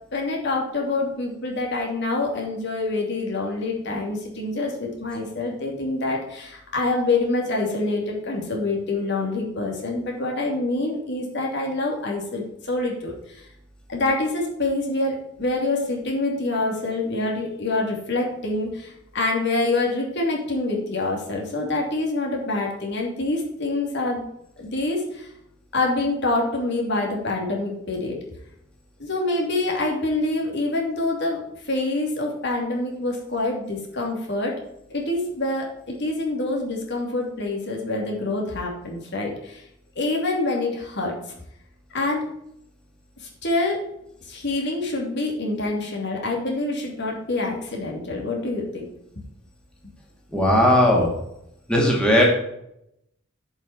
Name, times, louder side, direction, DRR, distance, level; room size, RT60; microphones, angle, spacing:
voice 1, 0.1-13.5 13.9-24.2 24.6-25.3 25.7-28.2 29.0-34.6 34.9-39.6 40.0-41.2 41.9-42.2 43.2-43.8 44.2-48.9, left 2 dB, 55° left, 0 dB, 2.8 m, -26 dB
voice 2, 50.3-51.1 51.7-52.2, left 1 dB, 5° left, -2 dB, 2.3 m, -17 dB
10.5 x 5.7 x 6.9 m, 0.77 s
head